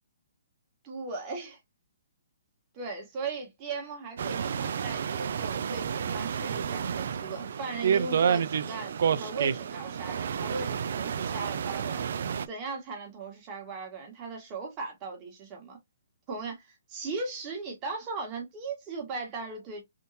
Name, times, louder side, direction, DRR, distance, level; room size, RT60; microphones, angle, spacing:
voice 1, 0.8-1.6 2.7-12.0 12.5-15.8 16.3-19.8, right 4 dB, 25° right, 1.4 m, -38 dB
sound 1, 4.2-12.5, right 7 dB, 60° right, 0.3 m, -30 dB
3.6 x 2.7 x 2.7 m
hypercardioid pair, 155°, 0 cm